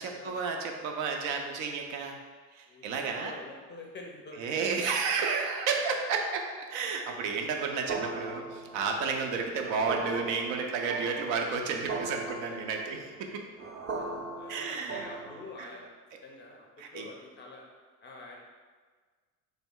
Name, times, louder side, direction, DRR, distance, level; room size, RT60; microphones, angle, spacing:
voice 1, 0.0-2.2 2.5-3.3 4.4-13.3 14.5-15.1 15.6-15.7 16.8-17.1, right 5 dB, 65° right, 2 dB, 0.6 m, -32 dB
voice 2, 2.7-4.6 9.0-9.4 12.5-12.6 13.9-15.9 16.2-17.6 18.0-18.4, left 3 dB, 25° left, 0 dB, 0.5 m, -47 dB
sound 1, 7.9-15.7, right 3 dB, 25° right, 0.6 m, -39 dB
3.1 x 2.0 x 3.6 m, 1.5 s
hypercardioid pair, 70°, 47 cm